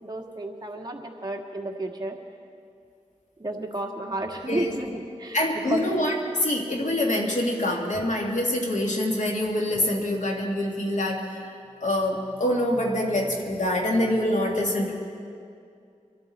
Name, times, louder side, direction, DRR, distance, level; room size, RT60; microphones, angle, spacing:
voice 1, 0.0-2.2 3.4-5.4 5.6-5.9, right 1 dB, 30° right, 1 dB, 1.7 m, -32 dB
voice 2, 5.3-6.1 6.4-11.5 11.8-14.9, left 1 dB, 75° left, 0 dB, 2.1 m, -25 dB
23.5 x 13.0 x 4.3 m, 2.4 s
wide cardioid pair, 60°, 13 cm